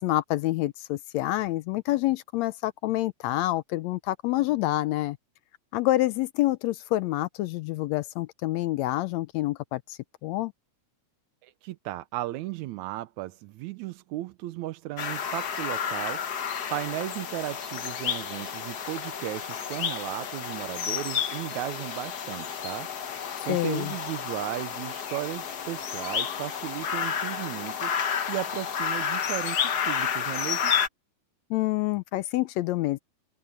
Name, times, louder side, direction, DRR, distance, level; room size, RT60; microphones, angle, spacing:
voice 1, 0.0-5.2 5.7-10.5 23.5-23.9 31.5-33.0, left 16 dB, 80° left, 1.7 m, -27 dB
voice 2, 11.4-16.2 16.7-22.9 23.4-28.0 28.3-30.7, right 16 dB, 80° right, 2.0 m, -35 dB
sound 1, 15.0-30.9, left 7 dB, 60° left, 1.0 m, -31 dB
omnidirectional pair, 3.4 m